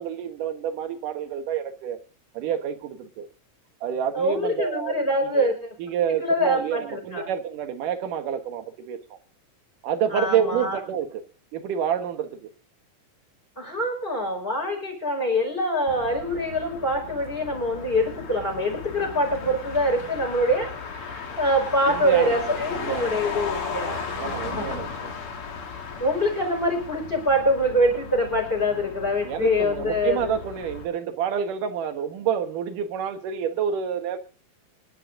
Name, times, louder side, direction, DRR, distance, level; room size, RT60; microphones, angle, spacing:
voice 1, 0.0-2.0 2.3-3.3 3.8-5.5 5.8-9.2 9.8-11.2 11.5-12.5 21.9-23.2 24.2-25.1 29.2-34.2, right 8 dB, 70° right, 2.8 m, -28 dB
voice 2, 4.1-5.5 6.2-7.3 10.1-10.8 13.6-24.7 26.0-30.4, equal, 15° left, 5.1 m, -25 dB
Motor vehicle (road), 15.9-30.8, left 5 dB, 45° left, 2.6 m, -36 dB
26.5 x 11.0 x 2.6 m
omnidirectional pair, 4.0 m